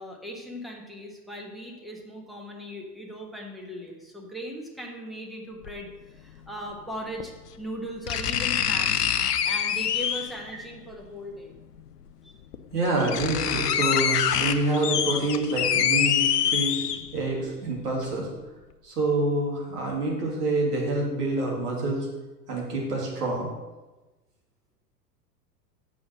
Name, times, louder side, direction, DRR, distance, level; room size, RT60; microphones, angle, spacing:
voice 1, 0.0-9.0 9.4-11.5 12.2-12.4, equal, ahead, -1 dB, 1.4 m, -38 dB
sound 1, 5.6-5.7 7.2-7.3 8.1-10.4 11.8-11.9 12.5-12.6 12.9-17.3 17.7-17.8, left 9 dB, 70° left, 0.8 m, -25 dB
voice 2, 12.7-16.8 17.1-18.3 18.8-22.1 22.5-23.5, right 2 dB, 65° right, -2 dB, 3.0 m, -27 dB
7.1 x 6.2 x 6.5 m, 1.1 s
figure-of-eight pair, 95°, 49 cm